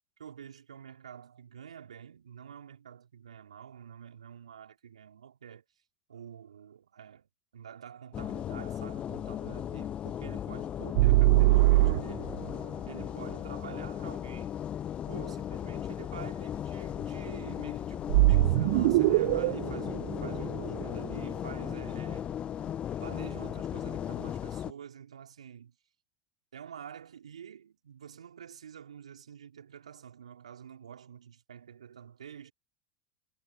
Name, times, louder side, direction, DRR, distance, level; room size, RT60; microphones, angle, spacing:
voice 1, 0.2-5.6 6.1-12.4 12.9-14.6 15.1-22.3 22.6-25.8 26.5-32.5, right 8 dB, 75° right, 4.1 m, -48 dB
sound 1, 8.1-24.7, left 10 dB, 35° left, 1.1 m, -37 dB
sound 2, 11.0-12.5 18.1-21.2, right 21 dB, 60° right, 0.5 m, -23 dB
figure-of-eight pair, 85°, 3 cm